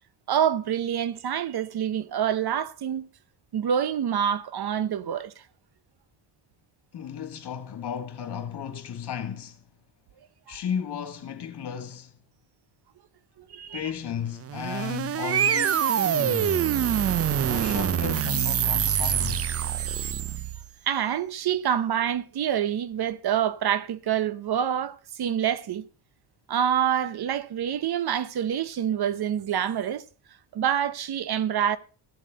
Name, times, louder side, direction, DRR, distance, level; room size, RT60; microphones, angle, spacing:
voice 1, 0.3-3.1 3.5-5.4 10.5-10.6 13.4-13.8 20.9-25.9 26.5-30.0 30.5-31.8, right 9 dB, 50° right, 0.8 m, -26 dB
voice 2, 6.9-9.6 10.5-12.2 13.7-16.7 17.4-19.6, left 8 dB, 55° left, 2.3 m, -34 dB
sound 1, 14.4-20.7, right 9 dB, 30° right, 0.4 m, -25 dB
15.0 x 7.5 x 5.1 m
cardioid pair, 100°, 48 cm